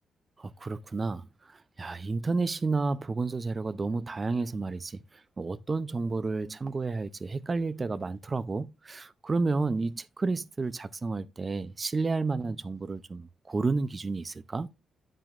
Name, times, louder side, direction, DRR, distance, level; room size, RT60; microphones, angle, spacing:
voice 1, 0.4-14.7, right 3 dB, 25° right, 0.5 m, -31 dB
9.3 x 7.5 x 2.4 m
cardioid pair, 125°, 0 cm